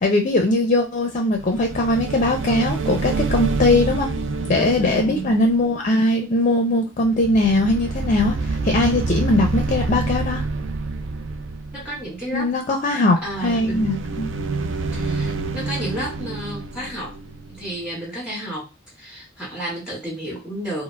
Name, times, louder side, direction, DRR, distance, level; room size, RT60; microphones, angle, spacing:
voice 1, 0.0-4.1 4.5-8.4 8.6-10.4 12.3-14.3, left 2 dB, 40° left, 3 dB, 0.5 m, -20 dB
sound 1, 1.4-6.7 7.0-12.2 13.2-18.0, right 3 dB, 70° right, 0.4 m, -28 dB
voice 2, 4.5-5.3 11.7-12.5 13.2-13.9 14.9-17.1 17.6-18.7 19.0-20.8, right 1 dB, 5° right, -5 dB, 1.9 m, -31 dB
4.5 x 2.0 x 2.3 m, 0.26 s
head